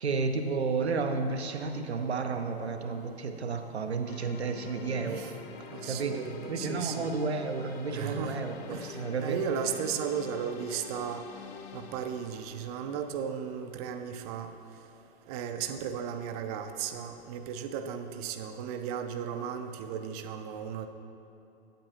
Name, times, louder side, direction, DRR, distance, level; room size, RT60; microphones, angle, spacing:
voice 1, 0.0-5.3 5.8-6.2 6.5-9.4, right 4 dB, 90° right, 6 dB, 0.6 m, -32 dB
sound 1, 4.1-14.0, left 7 dB, 25° left, 0.4 m, -46 dB
voice 2, 5.0-5.3 5.7-7.1 7.9-9.0 9.2-11.2 11.7-14.5 15.3-20.9, right 7 dB, 40° right, 7 dB, 0.5 m, -35 dB
8.4 x 7.8 x 2.9 m, 2.8 s
figure-of-eight pair, 105°, 32 cm